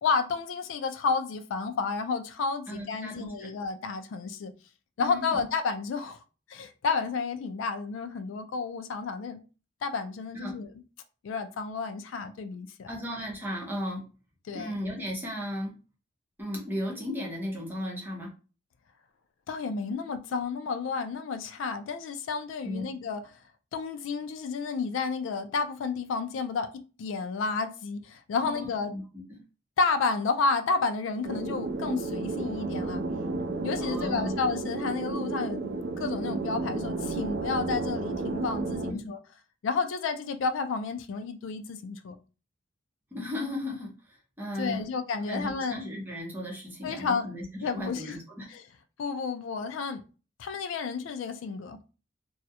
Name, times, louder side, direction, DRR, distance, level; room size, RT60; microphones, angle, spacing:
voice 1, 0.0-4.5 5.0-6.2 6.5-9.4 9.8-10.7 11.2-13.0 14.5-14.8 19.5-23.2 23.7-26.7 27.0-28.9 29.8-33.0 33.6-35.7 36.0-39.2 39.6-42.1 44.6-45.8 46.8-47.3 47.6-48.2 48.5-48.6 49.0-50.0 50.4-51.8, left 4 dB, 75° left, 0.3 m, -31 dB
voice 2, 2.7-3.5 5.0-5.5 10.3-10.6 12.9-14.0 14.5-15.7 16.4-18.3 22.6-22.9 28.4-29.0 29.3-29.4 33.8-34.4 38.9-39.0 43.1-44.9 45.3-48.5, left 1 dB, 10° right, 0.6 m, -35 dB
sound 1, 31.2-38.9, right 3 dB, 55° right, 0.3 m, -32 dB
2.3 x 2.0 x 2.7 m
head